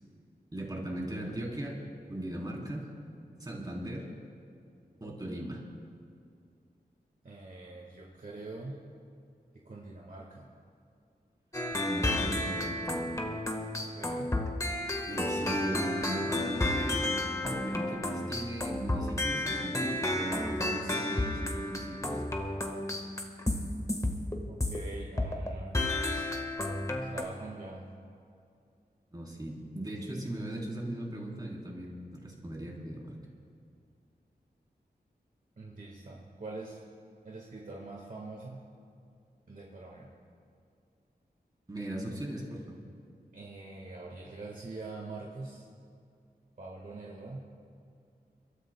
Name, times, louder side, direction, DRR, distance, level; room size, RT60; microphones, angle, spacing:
voice 1, 0.5-1.8 2.1-2.9 3.4-4.1 5.0-5.6 11.9-13.1 15.1-22.2 29.1-33.2 41.7-42.8, right 1 dB, 25° right, -3 dB, 3.6 m, -38 dB
voice 2, 7.2-8.9 9.5-10.5 13.9-14.4 24.5-26.3 27.1-27.9 35.6-36.8 37.2-38.6 39.5-40.1 43.3-45.7 46.6-47.5, right 2 dB, 55° right, -2 dB, 1.6 m, -44 dB
sound 1, 11.5-24.8 25.2-25.5 25.7-27.2, left 1 dB, 20° left, 1.4 m, -32 dB
29.5 x 13.5 x 2.2 m, 2.4 s
wide cardioid pair, 100°, 16 cm